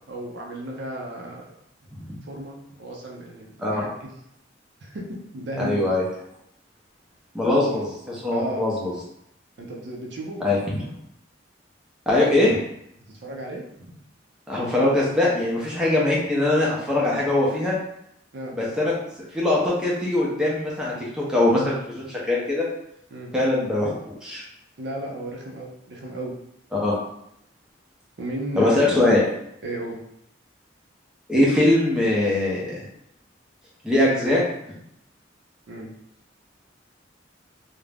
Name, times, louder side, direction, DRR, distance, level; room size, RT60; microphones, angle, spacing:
voice 1, 0.1-1.5 1.8-1.9 2.3-4.2 4.8-5.8 7.5-7.8 8.3-8.6 9.6-10.5 13.1-14.0 18.3-18.6 23.1-23.3 24.8-26.4 28.2-29.1 29.6-30.0 35.7-35.9, right 1 dB, 60° right, 0 dB, 0.5 m, -34 dB
voice 2, 5.6-6.0 7.3-8.9 10.4-10.8 12.1-12.6 14.5-17.8 18.5-18.9 19.3-22.7 23.3-24.4 26.7-26.9 28.6-29.2 31.3-32.8 33.8-34.4, left 2 dB, 5° right, -5 dB, 0.5 m, -22 dB
2.4 x 2.0 x 3.3 m, 0.76 s
head